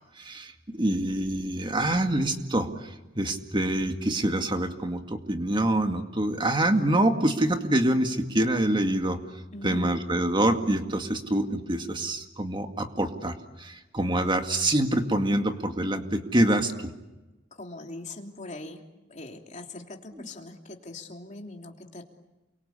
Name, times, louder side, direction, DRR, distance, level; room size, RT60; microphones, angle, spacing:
voice 1, 0.2-9.2 9.6-16.9, right 1 dB, 25° right, 5 dB, 2.1 m, -26 dB
voice 2, 9.5-10.0 17.5-18.8 19.1-22.0, left 2 dB, 40° left, 2 dB, 3.2 m, -41 dB
29.0 x 24.0 x 8.4 m, 1.0 s
head